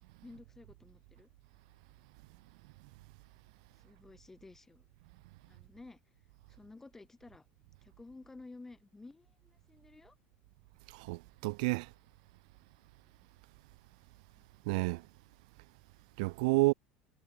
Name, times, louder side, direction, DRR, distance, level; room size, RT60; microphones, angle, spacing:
voice 1, 0.2-1.3 3.8-4.9 5.5-6.0 6.5-7.5 7.8-10.2 14.4-14.5, left 3 dB, 10° left, 4.3 m, -53 dB
voice 2, 10.9-11.9 14.7-15.0 16.2-16.7, right 26 dB, 90° right, 0.5 m, -30 dB
cardioid pair, 155°, 4 cm